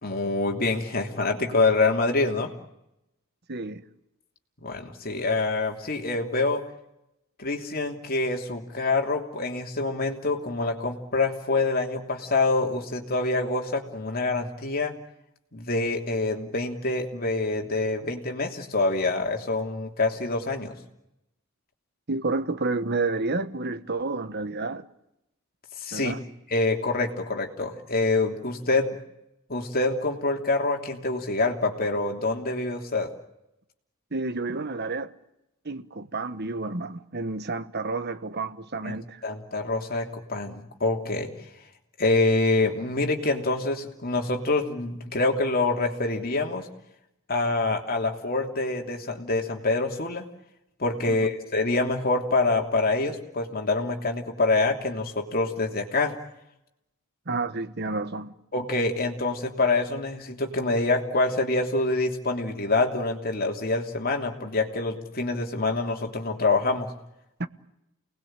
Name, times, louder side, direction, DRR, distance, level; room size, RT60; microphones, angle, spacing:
voice 1, 0.0-2.5 4.6-6.6 7.4-14.9 15.5-20.7 25.8-26.1 26.5-29.0 29.5-33.1 38.8-38.9 39.2-41.3 42.0-46.7 47.3-50.2 50.8-56.1 58.5-66.9, left 3 dB, 45° left, 3.2 m, -26 dB
voice 2, 3.5-3.8 22.1-24.9 25.9-26.2 34.1-35.1 35.6-39.2 51.1-51.2 57.3-58.3 67.4-67.5, right 3 dB, 50° right, 1.3 m, -30 dB
29.0 x 19.5 x 9.0 m
head